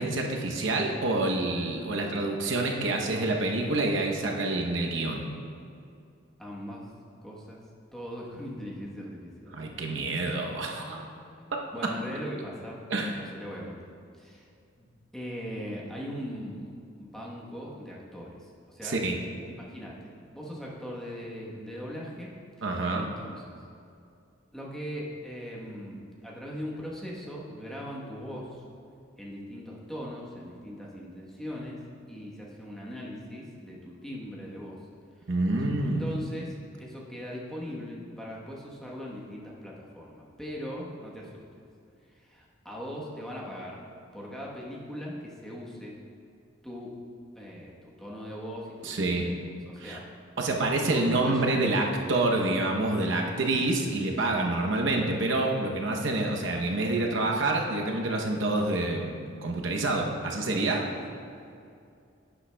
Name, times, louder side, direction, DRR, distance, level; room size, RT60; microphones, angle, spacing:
voice 1, 0.0-5.3 9.5-11.2 12.9-13.2 18.8-19.2 22.6-23.1 35.3-36.1 48.8-49.3 49.8-50.0 50.4-59.1 59.4-60.9, right 2 dB, 65° right, 1 dB, 0.8 m, -27 dB
voice 2, 6.4-6.9 7.2-7.6 7.9-9.6 9.9-10.3 11.3-13.8 14.2-14.5 14.7-14.9 15.1-16.7 17.0-19.0 19.5-22.3 22.6-22.7 23.0-23.3 24.5-28.6 29.2-31.8 32.1-34.8 35.8-36.5 36.8-41.6 42.2-43.8 44.1-46.0 46.6-46.9 47.3-49.4 49.7-50.0 50.8-51.6, equal, ahead, -5 dB, 1.0 m, -40 dB
11.0 x 8.5 x 2.2 m, 2.4 s
head